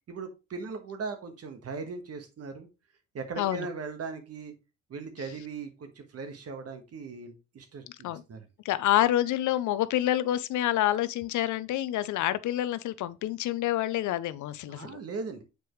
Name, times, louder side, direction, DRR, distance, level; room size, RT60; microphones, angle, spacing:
voice 1, 0.1-2.7 3.1-4.5 4.9-8.5 14.7-15.4, right 4 dB, 55° right, 1.5 m, -39 dB
voice 2, 3.4-3.7 8.0-8.2 8.6-15.0, left 13 dB, 75° left, 0.6 m, -27 dB
6.7 x 4.7 x 3.2 m
cardioid pair, 90°, 30 cm